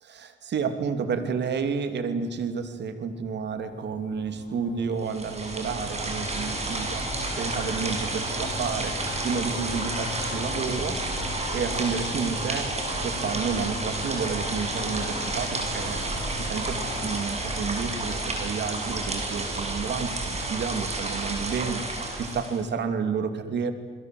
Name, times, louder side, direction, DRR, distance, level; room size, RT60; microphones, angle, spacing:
voice 1, 0.0-7.0 7.4-9.0 9.2-11.0 11.5-12.7 13.0-23.7, right 6 dB, 60° right, 8 dB, 3.0 m, -30 dB
sound 1, 2.9-17.2, left 5 dB, 65° left, 5.1 m, -40 dB
sound 2, 5.0-22.6, right 2 dB, 35° right, 6.8 m, -31 dB
29.5 x 21.5 x 7.9 m, 1.4 s
cardioid pair, 90°, 20 cm